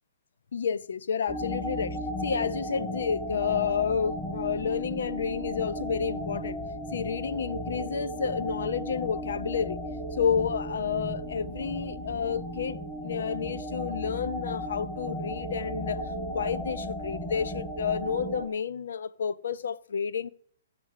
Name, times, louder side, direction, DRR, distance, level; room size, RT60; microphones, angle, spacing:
voice 1, 0.5-6.6 6.9-9.8 10.1-16.0 16.3-20.3, left 7 dB, 75° left, 0.6 m, -30 dB
sound 1, 1.3-18.5, equal, 10° left, 2.8 m, -35 dB
15.0 x 6.1 x 6.6 m
hypercardioid pair, 140°, 0 cm